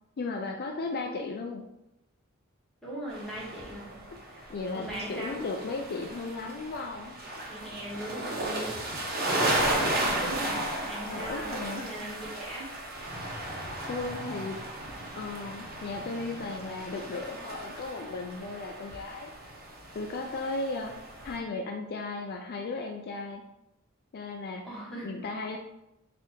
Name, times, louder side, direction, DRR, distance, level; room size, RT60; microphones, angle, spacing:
voice 1, 0.2-1.6 4.1-4.2 4.5-7.2 11.0-11.9 13.9-14.6 15.1-19.3 19.9-20.9 21.2-23.4 24.1-24.6 25.0-25.6, left 3 dB, 45° left, 2 dB, 0.4 m, -35 dB
voice 2, 2.8-3.9 4.2-4.5 4.7-5.4 7.5-8.7 9.3-12.7 24.6-25.1, right 1 dB, 5° left, -7 dB, 1.6 m, -39 dB
sound 1, 3.1-21.4, right 1 dB, 45° right, 1.1 m, -35 dB
4.1 x 2.8 x 4.4 m, 0.87 s
head